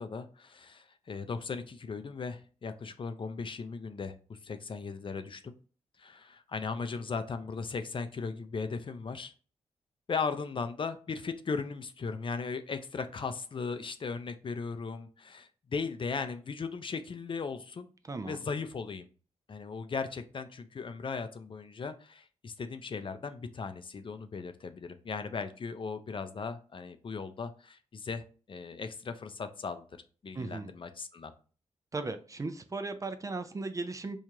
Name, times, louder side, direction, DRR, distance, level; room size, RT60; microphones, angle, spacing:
voice 1, 0.0-5.5 6.0-9.3 10.1-17.9 18.2-19.1 19.5-28.2 28.5-29.8 30.2-31.3, left 5 dB, 45° left, 9 dB, 0.5 m, -37 dB
voice 2, 18.1-18.4 30.3-30.7 31.9-34.2, right 3 dB, 25° right, 8 dB, 0.4 m, -36 dB
4.5 x 2.4 x 2.8 m, 0.38 s
cardioid pair, 80°, 13 cm